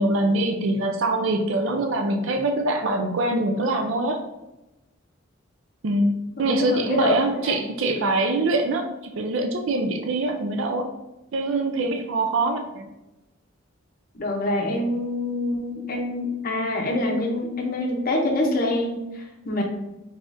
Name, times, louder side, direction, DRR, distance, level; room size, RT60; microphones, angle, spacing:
voice 1, 0.0-4.2 5.8-10.9 11.3-12.9, right 2 dB, 65° right, 4 dB, 0.4 m, -24 dB
voice 2, 6.4-7.2 7.4-7.6 14.1-19.6, left 1 dB, 45° left, 1 dB, 0.7 m, -25 dB
3.6 x 3.4 x 2.6 m, 0.97 s
head